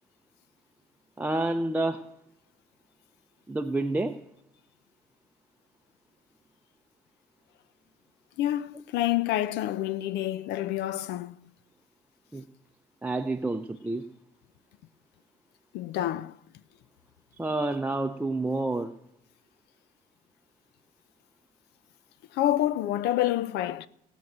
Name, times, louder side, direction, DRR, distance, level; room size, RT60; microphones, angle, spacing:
voice 1, 1.2-2.1 3.5-4.2 12.3-12.4 13.0-14.1 17.4-19.0, right 2 dB, 10° right, 0.7 m, -29 dB
voice 2, 8.4-11.4 15.7-16.4 22.3-23.9, left 13 dB, 85° left, 0.7 m, -28 dB
18.5 x 9.1 x 7.5 m
cardioid pair, 110°, 17 cm